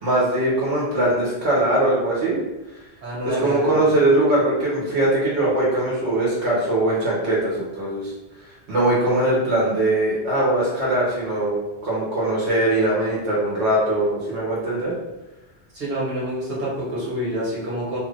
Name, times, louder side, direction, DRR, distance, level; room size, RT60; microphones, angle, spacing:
voice 1, 0.0-2.4 3.2-8.1 8.7-14.9, right 1 dB, 85° right, -6 dB, 1.2 m, -21 dB
voice 2, 3.0-3.8 15.7-18.0, right 1 dB, 50° right, -6 dB, 1.3 m, -27 dB
2.7 x 2.4 x 3.2 m, 1.0 s
omnidirectional pair, 1.1 m